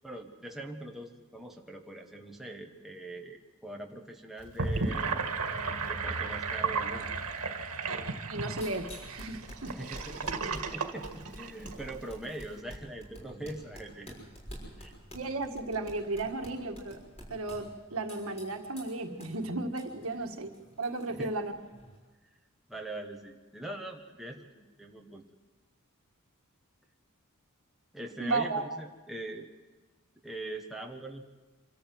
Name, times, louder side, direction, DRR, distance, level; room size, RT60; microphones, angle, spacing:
voice 1, 0.0-7.1 9.7-14.2 14.8-14.9 21.1-21.3 22.7-25.2 27.9-29.5 30.2-31.2, right 1 dB, ahead, 0 dB, 1.4 m, -42 dB
Gurgling / Sink (filling or washing), 4.4-11.9, right 4 dB, 85° right, 1.9 m, -34 dB
sound 1, 8.2-22.0, equal, 30° left, 6.3 m, -49 dB
voice 2, 8.3-9.8 15.1-17.0 17.3-20.5 20.8-21.5 28.2-28.7, right 2 dB, 65° right, 5 dB, 1.7 m, -34 dB
26.0 x 13.5 x 7.7 m, 1.2 s
head